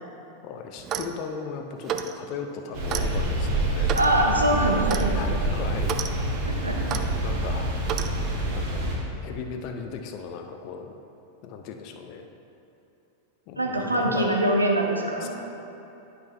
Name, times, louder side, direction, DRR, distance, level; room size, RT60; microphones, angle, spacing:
voice 1, 0.4-4.0 4.4-6.3 6.8-7.7 8.5-10.9 11.4-12.3 13.5-14.4 15.2-15.3, left 6 dB, 40° left, 4 dB, 0.7 m, -37 dB
Clock, 0.8-1.2 1.8-2.1 2.9-3.1 3.9-4.1 4.9-5.1 5.8-6.1 6.9-7.0 7.9-8.1, right 9 dB, 35° right, 0.4 m, -30 dB
sound 1, 2.7-9.0, right 1 dB, 50° right, 1.8 m, -27 dB
voice 2, 3.9-5.1 6.6-6.8 13.6-15.3, right 1 dB, 85° right, 0 dB, 0.9 m, -23 dB
10.0 x 5.6 x 3.3 m, 2.9 s
figure-of-eight pair, 90°, 0 cm